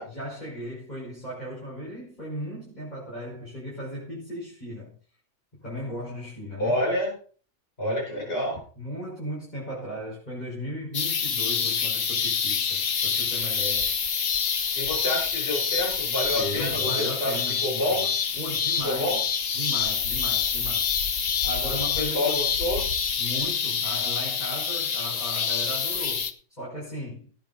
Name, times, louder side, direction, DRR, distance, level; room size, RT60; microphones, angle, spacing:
voice 1, 0.0-5.0 5.6-6.8 8.8-13.9 16.2-17.6 18.0-19.2 19.5-20.9 21.4-22.4 23.2-26.3 26.6-27.3, equal, 35° left, 6.2 m, -36 dB
voice 2, 6.6-7.1 7.8-8.6 14.8-17.3 17.6-18.1 18.8-19.2 22.0-22.8, left 1 dB, 50° left, 5.4 m, -28 dB
sound 1, 10.9-26.3, left 6 dB, 90° left, 1.5 m, -27 dB
17.0 x 9.8 x 4.3 m
omnidirectional pair, 1.3 m